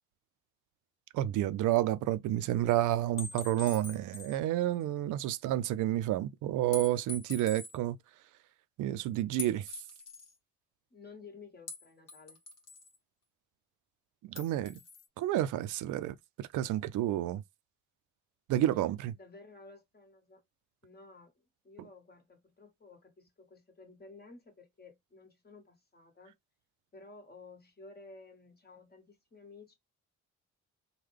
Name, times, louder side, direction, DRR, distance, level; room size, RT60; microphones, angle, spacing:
voice 1, 1.1-8.0 8.8-9.8 14.2-14.8 15.2-17.4 18.5-19.2 21.8-21.9, right 13 dB, 80° right, 0.5 m, -30 dB
sound 1, 3.2-4.4 4.8-4.9 6.7-7.8 9.4-10.3 11.7-13.0 14.4-15.1, left 3 dB, 55° left, 1.2 m, -44 dB
voice 2, 10.9-12.4 18.7-20.4 20.8-26.3 26.9-29.7, left 3 dB, 30° left, 1.5 m, -54 dB
3.7 x 2.2 x 3.2 m
cardioid pair, 90°, 30 cm